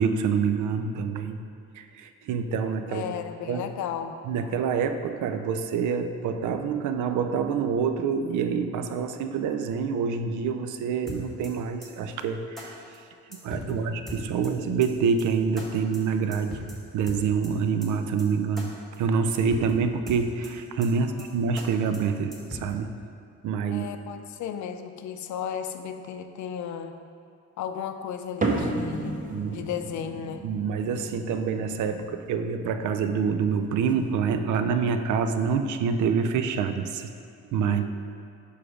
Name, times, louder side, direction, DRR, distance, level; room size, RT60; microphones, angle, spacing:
voice 1, 0.0-1.4 1.8-3.0 3.5-3.7 4.3-12.7 13.4-16.6 16.9-18.7 19.0-22.9 23.4-23.9 29.3-29.6 30.4-37.1 37.5-37.9, right 6 dB, 75° right, 8 dB, 0.5 m, -26 dB
voice 2, 2.9-4.2 13.6-14.0 14.4-14.5 21.0-21.3 23.7-26.9 27.6-29.2 29.5-30.4 37.7-37.9, left 8 dB, 70° left, 8 dB, 0.5 m, -35 dB
sound 1, 11.1-11.5 11.8-11.9 12.2-12.3 12.6-12.7 12.9-13.0 13.3-13.7 14.1-14.5 14.8-14.9 15.2-15.3 15.6-15.7 15.9-16.0 16.3-16.7 17.1-17.5 17.8-17.9 18.2-18.3 18.6-18.7 18.9-19.0 19.3-19.7 20.1-20.5 20.8-20.9 21.2-21.3 21.6-21.7 21.9-22.0 22.3-22.7, left 1 dB, ahead, 1.4 m, -40 dB
sound 2, 28.4-35.1, right 2 dB, 25° right, 0.8 m, -34 dB
4.9 x 4.9 x 5.0 m, 2.4 s
cardioid pair, 90°, 30 cm